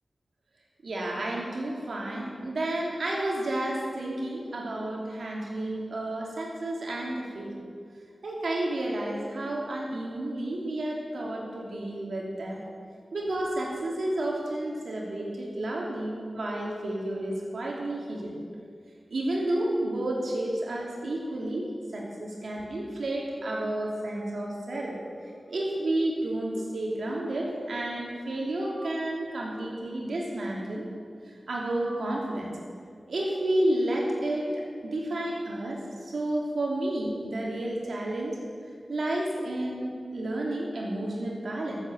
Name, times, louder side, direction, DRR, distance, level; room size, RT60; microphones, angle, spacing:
voice 1, 0.8-7.6 8.2-12.6 13.1-18.3 19.1-25.0 25.5-30.9 31.5-32.5 33.1-38.4 38.9-41.8, right 1 dB, 80° right, -2 dB, 3.0 m, -31 dB
13.5 x 8.2 x 8.0 m, 2.2 s
cardioid pair, 45°, 0 cm